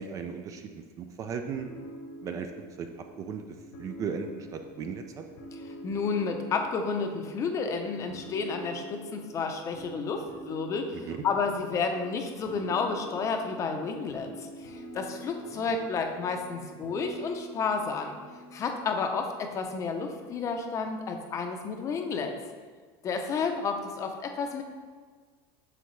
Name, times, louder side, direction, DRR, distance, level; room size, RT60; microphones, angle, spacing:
voice 1, 0.0-1.7 2.2-2.5 2.8-3.5 3.8-5.3 10.9-11.2 15.5-15.7, right 6 dB, 30° right, 6 dB, 0.4 m, -36 dB
sound 1, 1.5-19.0, right 1 dB, 75° left, 1.1 m, -46 dB
voice 2, 5.8-11.0 11.2-18.1 18.5-22.3 23.0-24.6, left 5 dB, 25° left, 5 dB, 0.6 m, -31 dB
7.9 x 5.7 x 3.2 m, 1.5 s
cardioid pair, 165°, 12 cm